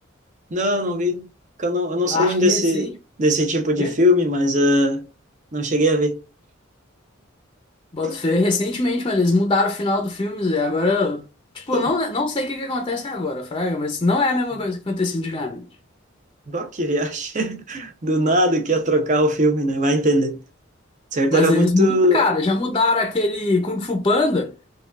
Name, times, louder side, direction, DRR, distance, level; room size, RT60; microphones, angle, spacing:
voice 1, 0.5-1.3 1.6-2.9 3.2-5.0 5.5-6.2 8.0-8.1 11.7-11.9 16.5-20.4 21.1-22.2, equal, 40° right, 0.8 m, -20 dB
voice 2, 2.0-2.9 3.8-4.0 7.9-11.2 11.5-15.7 21.3-24.5, left 2 dB, 25° left, 0.6 m, -22 dB
5.1 x 2.3 x 2.4 m
head